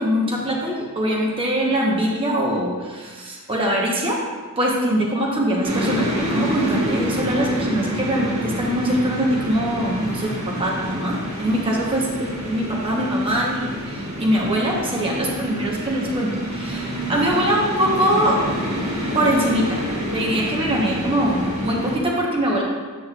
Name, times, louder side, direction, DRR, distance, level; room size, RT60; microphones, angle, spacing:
voice 1, 0.0-4.2 4.6-18.4 19.1-19.8 20.1-22.6, equal, 25° right, -3 dB, 1.0 m, -22 dB
sound 1, 5.6-22.0, equal, 80° right, 1.5 m, -27 dB
8.1 x 6.3 x 2.4 m, 1.5 s
head